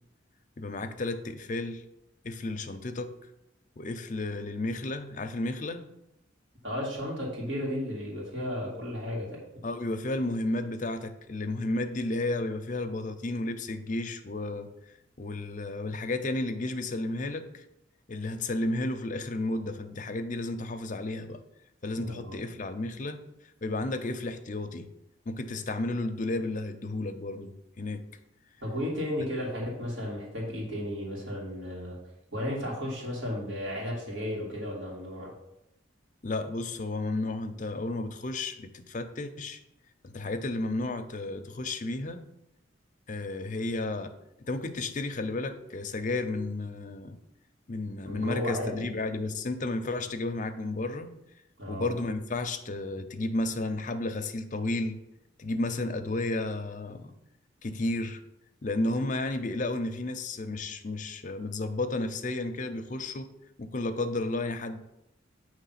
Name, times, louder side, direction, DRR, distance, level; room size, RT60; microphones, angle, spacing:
voice 1, 0.6-1.8 2.2-3.2 3.8-5.8 9.6-14.7 15.2-17.6 18.1-21.4 21.8-23.3 23.6-24.9 25.3-28.1 36.2-39.6 40.1-42.2 43.1-47.2 47.7-51.1 51.7-55.0 55.4-57.1 57.6-58.2 58.6-63.3 63.6-64.8, left 2 dB, 40° left, 7 dB, 0.6 m, -32 dB
voice 2, 6.6-9.4 21.9-22.4 28.6-32.0 32.3-35.3 48.0-48.9 51.6-52.0, left 1 dB, 70° right, -4 dB, 2.4 m, -34 dB
8.4 x 3.1 x 5.7 m, 0.85 s
head